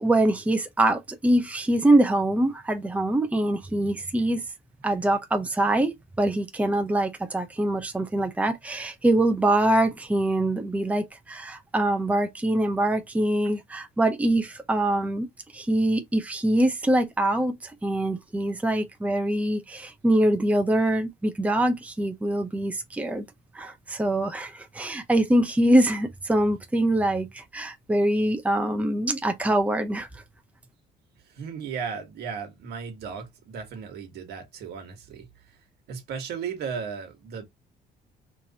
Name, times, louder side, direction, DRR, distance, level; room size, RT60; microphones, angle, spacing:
voice 1, 0.0-4.4 4.8-15.3 15.5-23.2 23.5-30.2, right 1 dB, 10° right, 0.8 m, -24 dB
voice 2, 31.2-35.6 35.9-37.4, right 6 dB, 70° right, 1.6 m, -36 dB
4.6 x 3.2 x 2.8 m
cardioid pair, 110°, 17 cm